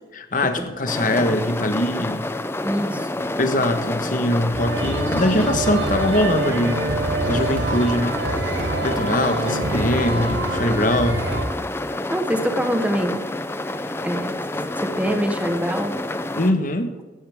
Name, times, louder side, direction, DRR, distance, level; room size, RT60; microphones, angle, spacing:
voice 1, 0.1-2.2 3.4-6.9 7.2-8.3 8.8-11.2 16.4-16.9, left 1 dB, 50° left, 7 dB, 1.3 m, -22 dB
sound 1, 0.9-16.5, left 1 dB, 15° left, 0.5 m, -28 dB
voice 2, 2.6-3.1 12.1-13.2 14.0-14.4 14.8-16.0, equal, 10° right, 6 dB, 1.0 m, -25 dB
sound 2, 4.5-11.4, right 2 dB, 85° right, 2.0 m, -26 dB
17.0 x 12.5 x 3.6 m, 1.4 s
head